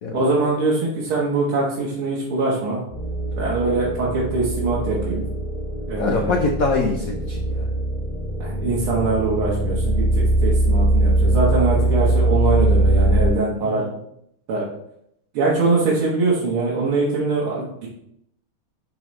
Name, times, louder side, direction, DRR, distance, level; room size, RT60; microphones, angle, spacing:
voice 1, 0.1-2.8 3.4-5.2 5.9-6.3 8.4-13.9 14.5-14.6 15.3-17.9, right 3 dB, 85° right, -5 dB, 2.2 m, -22 dB
sound 1, 2.9-13.3, right 1 dB, 25° left, 1.6 m, -21 dB
voice 2, 6.0-7.7 13.6-13.9, left 3 dB, 60° left, 1 dB, 0.9 m, -24 dB
10.5 x 3.9 x 3.1 m, 0.74 s
omnidirectional pair, 2.3 m